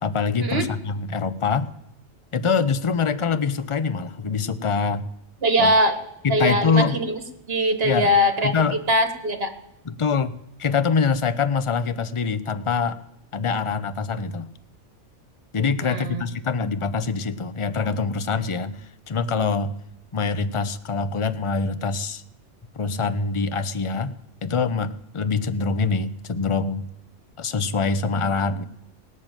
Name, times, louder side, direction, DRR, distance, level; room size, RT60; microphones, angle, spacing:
voice 1, 0.0-1.7 2.3-5.1 5.6-5.7 6.2-7.0 7.8-8.1 8.4-8.8 9.9-10.3 10.6-13.0 13.3-14.5 15.5-19.8 20.1-22.2 22.7-24.1 24.4-26.9 27.4-28.6, left 5 dB, 35° left, 12 dB, 0.6 m, -24 dB
voice 2, 5.4-6.0 6.3-7.2 7.5-9.5 15.8-16.2, equal, 55° right, 8 dB, 1.7 m, -21 dB
18.0 x 6.4 x 8.9 m, 0.81 s
omnidirectional pair, 1.2 m